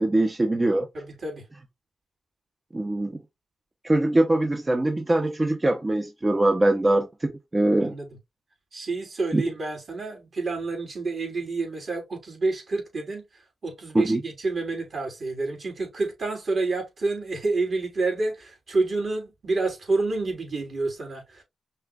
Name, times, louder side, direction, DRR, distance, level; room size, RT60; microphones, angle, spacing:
voice 1, 0.0-0.9 2.7-3.1 3.8-7.9 9.3-9.4 13.9-14.2, right 1 dB, 25° right, 0.8 m, -22 dB
voice 2, 0.9-1.5 7.8-8.1 8.7-13.2 13.6-21.4, right 3 dB, 60° right, 3.3 m, -28 dB
5.5 x 3.5 x 2.3 m
cardioid pair, 70°, 0 cm